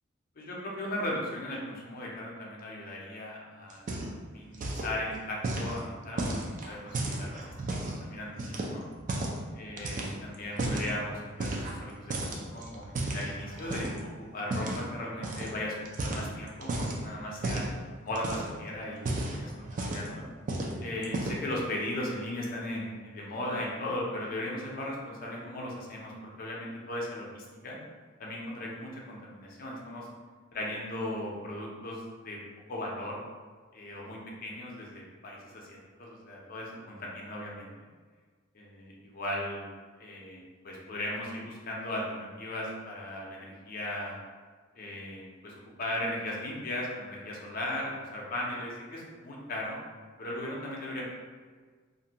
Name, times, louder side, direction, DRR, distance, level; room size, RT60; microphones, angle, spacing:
voice 1, 0.4-3.9 4.3-8.9 9.5-17.6 18.0-20.2 20.8-27.8 28.2-30.1 30.5-32.4 32.7-33.2 33.7-37.9 38.5-39.7 40.0-44.2 44.8-49.8 50.2-51.1, left 1 dB, 45° left, -3 dB, 0.5 m, -37 dB
sound 1, 3.7-4.3 4.5-4.9 5.4-8.0 8.4-9.4 9.8-10.9 11.4-11.8 12.1-14.0 14.5-14.8 15.2-15.5 15.8-17.0 17.4-17.7 18.1-18.6 18.9-20.1 20.5-20.7 21.0-21.5, right 2 dB, 40° right, 0.3 m, -33 dB
2.5 x 2.2 x 2.7 m, 1.5 s
head